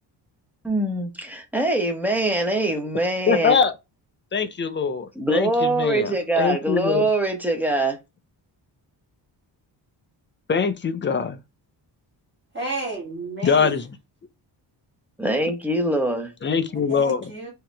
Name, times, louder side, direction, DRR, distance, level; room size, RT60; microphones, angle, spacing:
voice 1, 0.6-3.6 5.2-8.0 15.2-16.3, right 1 dB, 5° right, 0.9 m, -23 dB
voice 2, 3.3-3.7 4.3-7.1 10.5-11.4 13.4-13.9 16.4-17.3, left 5 dB, 25° left, 0.5 m, -23 dB
voice 3, 12.5-13.7 16.7-17.5, right 2 dB, 25° right, 1.8 m, -32 dB
4.8 x 2.9 x 3.3 m
wide cardioid pair, 165°, 45 cm